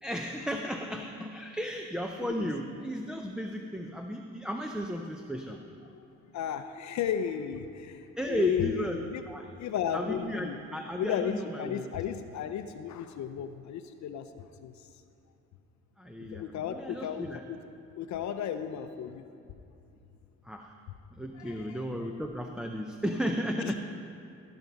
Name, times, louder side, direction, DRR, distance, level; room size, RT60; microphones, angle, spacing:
voice 1, 0.0-5.6 8.2-9.5 9.9-11.9 16.0-17.4 20.4-20.7 21.1-23.8, equal, 5° right, 3 dB, 0.5 m, -34 dB
voice 2, 6.3-9.2 9.6-10.6 11.0-14.8 16.3-17.6 18.0-19.2 21.3-21.8 23.6-23.8, left 8 dB, 65° left, 9 dB, 0.6 m, -34 dB
15.5 x 6.1 x 5.3 m, 2.7 s
cardioid pair, 90°, 30 cm